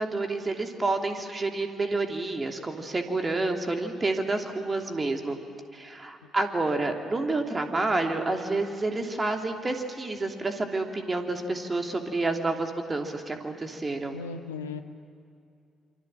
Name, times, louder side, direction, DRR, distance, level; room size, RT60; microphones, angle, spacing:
voice 1, 0.0-5.4 5.7-14.2, right 2 dB, 25° right, 4 dB, 3.0 m, -29 dB
voice 2, 14.1-14.8, left 5 dB, 80° left, 6 dB, 1.2 m, -36 dB
28.0 x 25.0 x 7.6 m, 2.5 s
figure-of-eight pair, 45°, 0 cm